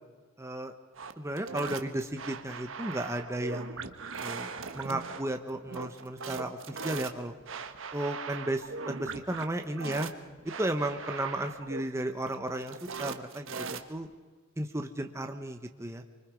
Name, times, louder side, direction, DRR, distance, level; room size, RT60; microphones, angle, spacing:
voice 1, 0.4-0.7 1.2-3.9 4.2-7.3 7.9-10.1 10.4-14.1 14.6-16.0, right 1 dB, 15° right, 5 dB, 1.1 m, -34 dB
sound 1, 1.0-14.1, right 4 dB, 65° right, 1.3 m, -40 dB
25.0 x 24.5 x 5.2 m, 1.4 s
head